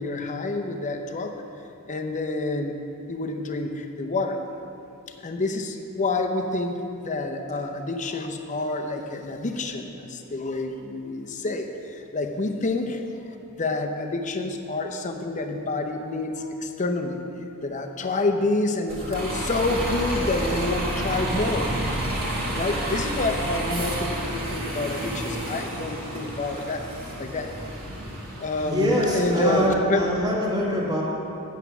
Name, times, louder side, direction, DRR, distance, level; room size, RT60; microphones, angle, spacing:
voice 1, 0.0-1.3 1.9-2.8 3.1-4.4 5.2-13.0 13.6-17.2 17.6-21.7 22.6-26.8 27.2-27.5 28.4-30.1, left 2 dB, 35° left, 4 dB, 0.7 m, -28 dB
Bus, 18.9-29.7, right 1 dB, 45° right, 1.6 m, -30 dB
voice 2, 28.6-31.0, equal, 20° right, -4 dB, 1.8 m, -24 dB
8.2 x 8.1 x 6.0 m, 2.7 s
head